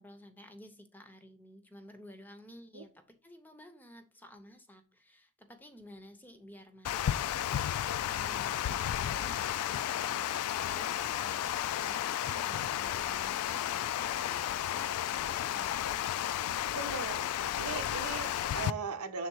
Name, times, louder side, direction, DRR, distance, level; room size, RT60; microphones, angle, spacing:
voice 1, 0.0-10.3 10.6-14.4 14.7-15.8, left 1 dB, 10° left, 8 dB, 0.6 m, -53 dB
Water, 6.8-18.7, left 11 dB, 85° left, 0.3 m, -33 dB
voice 2, 16.7-17.3 17.5-19.3, right 4 dB, 90° right, 7 dB, 0.8 m, -38 dB
6.5 x 3.6 x 4.6 m, 0.35 s
head